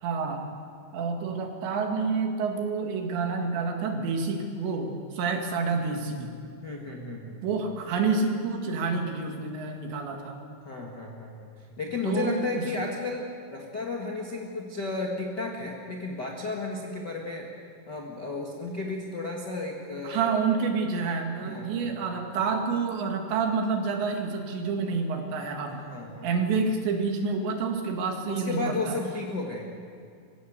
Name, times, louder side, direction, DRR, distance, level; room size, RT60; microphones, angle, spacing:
voice 1, 0.0-0.5 0.9-6.4 7.4-10.4 12.0-12.7 20.0-25.8 26.2-29.0, right 4 dB, 70° right, 3 dB, 4.1 m, -28 dB
voice 2, 6.6-7.4 10.6-11.5 11.8-17.5 17.9-20.3 21.4-21.9 25.9-26.3 28.3-29.7, left 3 dB, 75° left, -1 dB, 0.9 m, -33 dB
24.0 x 16.5 x 8.1 m, 2.3 s
omnidirectional pair, 5.4 m